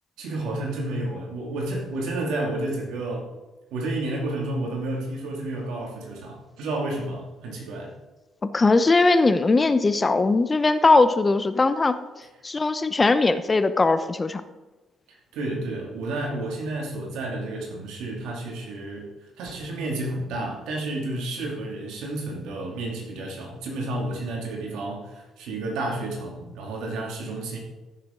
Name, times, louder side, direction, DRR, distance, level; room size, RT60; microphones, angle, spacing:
voice 1, 0.2-3.3 3.7-7.9 15.3-27.6, right 2 dB, 80° right, 0 dB, 2.5 m, -31 dB
voice 2, 8.5-12.0 12.4-14.4, left 3 dB, 30° left, 12 dB, 0.8 m, -20 dB
14.5 x 6.8 x 3.8 m, 1.1 s
supercardioid pair, 60°, 0 cm